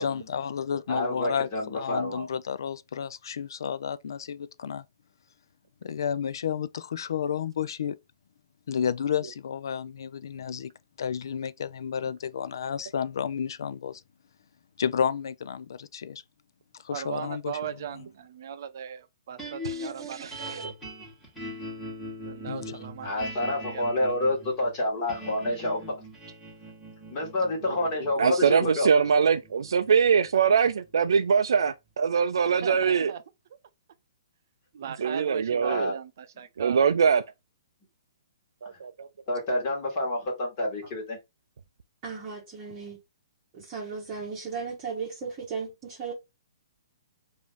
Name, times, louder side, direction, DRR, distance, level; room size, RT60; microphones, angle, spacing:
voice 1, 0.0-4.8 5.8-8.0 8.7-10.7 11.0-14.0 14.8-16.2 16.8-17.5 22.5-22.8, left 7 dB, 60° left, 0.4 m, -31 dB
voice 2, 0.9-2.3 23.0-25.9 27.1-28.9 35.6-35.9 38.6-38.8 39.3-41.2, left 1 dB, 25° left, 1.7 m, -28 dB
voice 3, 16.9-20.7 22.2-23.3 23.7-24.1 25.6-25.7 32.4-33.2 34.7-36.8, right 8 dB, 45° right, 0.6 m, -38 dB
sound 1, 19.4-31.7, equal, 5° left, 1.5 m, -41 dB
voice 4, 19.6-20.7 28.2-33.1 35.0-35.9 36.6-37.2 38.6-39.1, right 6 dB, 80° right, 0.4 m, -23 dB
voice 5, 42.0-43.0 43.5-46.1, right 5 dB, 20° right, 1.2 m, -36 dB
5.0 x 2.7 x 3.4 m
hypercardioid pair, 175°, 2 cm